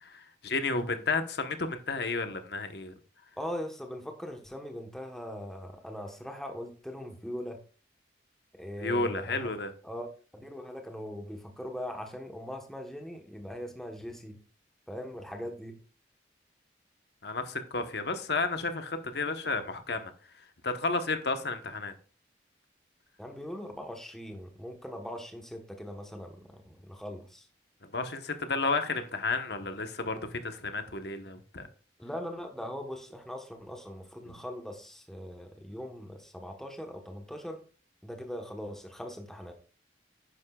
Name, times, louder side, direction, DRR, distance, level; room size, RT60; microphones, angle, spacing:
voice 1, 0.0-2.9 8.8-9.7 17.2-20.1 20.6-21.9 27.9-31.7, left 3 dB, 65° left, 1.1 m, -32 dB
voice 2, 3.4-7.6 8.5-9.5 9.8-10.1 10.3-14.4 14.9-15.8 23.2-27.5 32.0-37.6 38.0-39.5, equal, ahead, 1.1 m, -40 dB
10.5 x 10.0 x 2.4 m
head